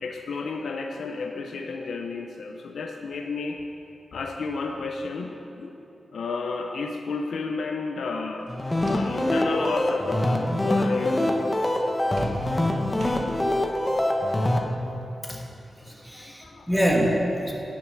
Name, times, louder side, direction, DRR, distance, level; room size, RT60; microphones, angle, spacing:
voice 1, 0.0-3.6 4.1-5.8 6.1-8.6 8.8-11.7 16.1-16.7, left 4 dB, 85° left, 3 dB, 0.5 m, -32 dB
sound 1, 8.4-9.4 9.7-10.1 12.2-13.6, right 1 dB, 70° right, 1.6 m, -40 dB
sound 2, 8.5-14.6, left 1 dB, 20° left, 0.9 m, -24 dB
voice 2, 15.8-17.5, equal, ahead, -2 dB, 1.3 m, -25 dB
10.5 x 6.5 x 6.3 m, 3.0 s
wide cardioid pair, 120°, 0 cm